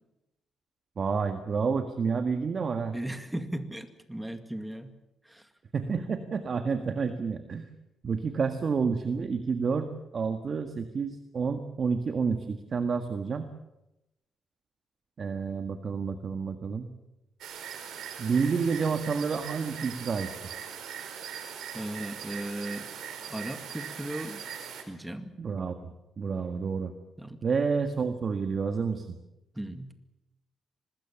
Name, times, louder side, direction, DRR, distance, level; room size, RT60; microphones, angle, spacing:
voice 1, 1.0-3.0 5.7-7.7 8.0-13.5 15.2-16.9 18.2-20.3 25.4-25.8 26.2-26.9 27.4-29.1, right 5 dB, 45° right, 7 dB, 1.7 m, -29 dB
voice 2, 2.9-5.0 5.3-5.5 21.7-22.9 23.3-24.4 24.9-25.4 27.2-27.4 29.5-29.9, right 1 dB, 5° right, 8 dB, 2.1 m, -37 dB
sound 1, 17.4-24.8, right 8 dB, 85° right, 4.3 m, -40 dB
25.0 x 20.0 x 7.2 m, 0.92 s
cardioid pair, 110°, 0 cm